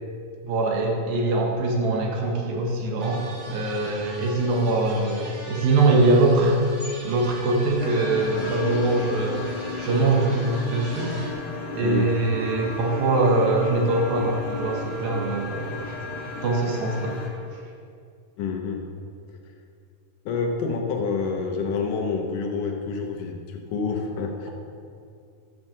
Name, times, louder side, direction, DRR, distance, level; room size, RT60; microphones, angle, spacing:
voice 1, 0.4-6.6 7.0-11.2 11.7-16.0 16.2-17.2, right 2 dB, 85° right, -1 dB, 3.3 m, -23 dB
sound 1, 3.0-11.3, right 2 dB, 45° right, 2.1 m, -41 dB
sound 2, 7.8-17.3, left 2 dB, 50° left, 1.7 m, -34 dB
voice 2, 11.8-12.2 16.3-16.4 18.4-18.9 20.3-24.5, left 4 dB, 70° left, 3 dB, 2.3 m, -28 dB
12.5 x 6.2 x 7.2 m, 2.4 s
omnidirectional pair, 4.2 m